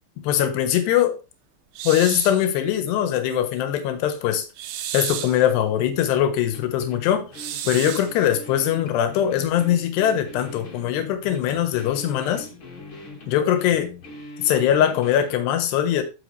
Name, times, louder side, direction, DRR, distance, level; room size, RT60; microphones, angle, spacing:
voice 1, 0.2-1.2 1.8-4.5 4.9-7.3 7.6-12.5 13.3-13.9 14.4-16.0, left 10 dB, 70° left, 3.1 m, -21 dB
sound 1, 1.8-2.4 4.6-5.4 7.3-8.1, right 10 dB, 75° right, 3.0 m, -32 dB
sound 2, 6.5-15.4, left 3 dB, 40° left, 2.1 m, -41 dB
10.5 x 7.0 x 3.3 m
omnidirectional pair, 5.5 m